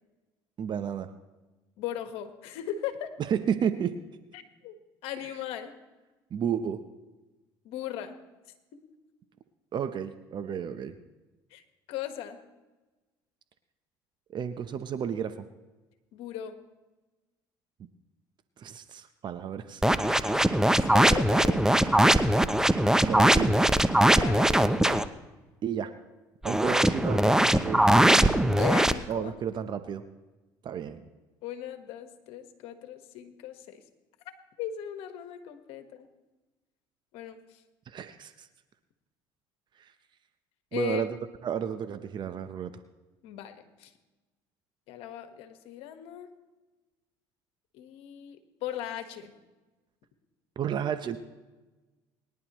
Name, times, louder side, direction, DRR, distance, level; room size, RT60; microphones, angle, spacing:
voice 1, 0.6-1.1 3.2-3.9 5.2-5.3 6.3-6.8 9.7-10.9 14.3-15.4 18.6-20.2 23.0-23.6 25.6-25.9 26.4-28.6 29.1-30.0 30.6-31.0 37.9-38.5 39.8-39.9 40.7-41.2 41.4-42.7 50.6-51.2, right 8 dB, 50° right, 10 dB, 0.8 m, -32 dB
voice 2, 1.8-3.1 4.3-4.8 5.0-5.7 7.6-8.1 11.5-11.6 11.9-12.4 16.1-16.6 20.8-21.7 24.1-25.1 28.6-29.3 31.4-33.8 34.6-36.1 37.1-37.6 40.7-41.0 43.2-43.9 44.9-46.3 47.7-49.3, left 11 dB, 75° left, 8 dB, 1.4 m, -38 dB
sound 1, 19.8-25.1 26.4-28.9, right 1 dB, 5° right, 0.7 m, -21 dB
22.5 x 10.5 x 3.1 m, 1.1 s
supercardioid pair, 80°, 10 cm